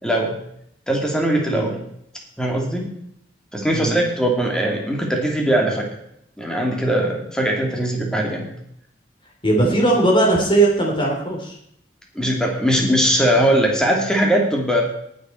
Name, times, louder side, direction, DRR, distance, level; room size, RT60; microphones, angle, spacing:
voice 1, 0.0-0.4 0.9-1.8 2.4-2.9 3.5-5.9 6.4-8.5 12.1-14.8, right 1 dB, 5° left, 0 dB, 2.5 m, -20 dB
voice 2, 9.4-11.5, right 2 dB, 30° left, -1 dB, 3.5 m, -18 dB
19.0 x 7.8 x 4.5 m, 0.73 s
head